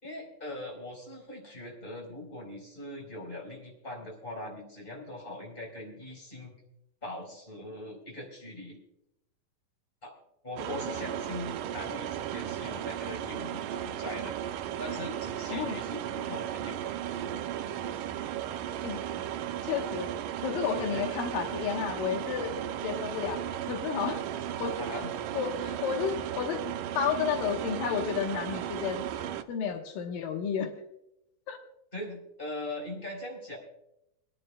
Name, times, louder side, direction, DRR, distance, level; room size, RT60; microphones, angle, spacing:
voice 1, 0.0-6.5 7.0-8.8 10.0-10.1 10.4-14.4 14.8-16.8 20.7-21.0 24.3-24.5 24.8-25.1 31.9-33.6, left 1 dB, 15° left, 0 dB, 3.8 m, -41 dB
sound 1, 10.6-29.4, right 11 dB, 80° right, 2.1 m, -35 dB
voice 2, 19.6-20.1 20.4-22.6 22.8-24.2 24.6-24.8 25.3-26.6 27.0-29.1 29.5-30.7 31.5-31.6, left 7 dB, 85° left, 3 dB, 2.9 m, -31 dB
28.5 x 10.5 x 2.2 m, 0.84 s
omnidirectional pair, 3.9 m